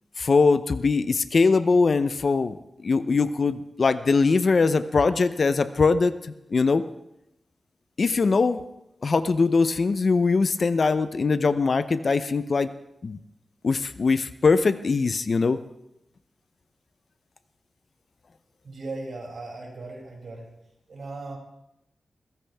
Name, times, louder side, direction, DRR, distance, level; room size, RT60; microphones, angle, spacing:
voice 1, 0.2-2.6 2.8-6.2 6.5-6.8 8.0-8.6 9.0-12.7 13.0-13.2 13.6-15.6, left 4 dB, 50° left, 13 dB, 0.7 m, -21 dB
voice 2, 18.6-20.5 20.9-21.4, right 2 dB, 60° right, -2 dB, 6.7 m, -37 dB
22.5 x 16.0 x 3.5 m, 0.86 s
wide cardioid pair, 125°, 0 cm